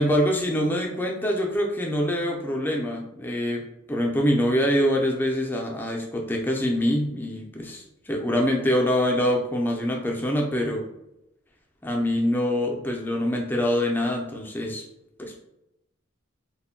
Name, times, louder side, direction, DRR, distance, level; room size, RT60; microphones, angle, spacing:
voice 1, 0.0-10.8 11.8-14.8 15.2-15.3, equal, 10° left, -1 dB, 0.4 m, -25 dB
2.2 x 2.1 x 3.6 m, 0.87 s
head